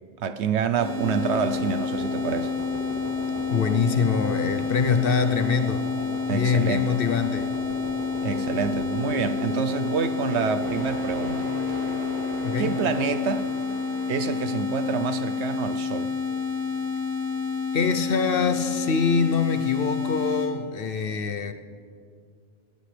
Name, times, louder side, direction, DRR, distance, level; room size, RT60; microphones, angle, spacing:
voice 1, 0.2-2.5 6.3-7.0 8.2-11.8 12.6-13.5 14.1-16.1, right 7 dB, 70° right, 10 dB, 0.9 m, -27 dB
sound 1, 0.8-13.1, equal, 15° right, 2.2 m, -37 dB
sound 2, 0.8-20.5, left 5 dB, 85° right, 3.5 m, -29 dB
voice 2, 3.5-5.9 6.3-7.5 12.4-12.8 17.7-21.5, left 5 dB, 55° left, 9 dB, 0.8 m, -24 dB
sound 3, 10.6-18.4 18.9-19.1, equal, 25° left, 3.0 m, -41 dB
21.5 x 18.0 x 3.3 m, 2.2 s
omnidirectional pair, 1.2 m